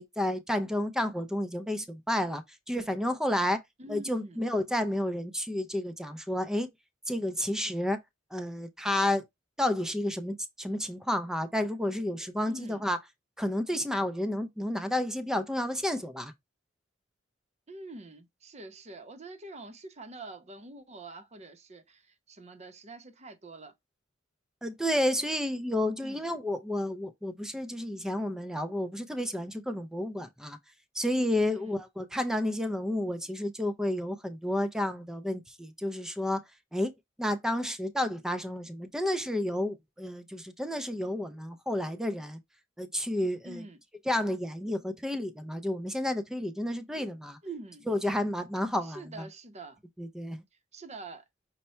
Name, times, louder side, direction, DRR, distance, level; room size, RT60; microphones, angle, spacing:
voice 1, 0.0-3.6 3.9-6.7 7.1-8.0 8.3-9.2 9.6-13.0 13.4-16.3 24.6-30.6 30.9-36.4 36.7-36.9 37.2-42.4 42.8-43.6 44.1-47.4 47.9-49.3 50.0-50.4, left 1 dB, 5° right, 0.5 m, -31 dB
voice 2, 3.8-4.4 12.5-12.8 17.7-23.7 26.0-26.3 31.5-31.8 43.4-43.8 46.9-47.1 47.4-47.9 48.8-49.8 50.7-51.2, right 2 dB, 35° right, 0.7 m, -45 dB
5.6 x 2.2 x 4.1 m
head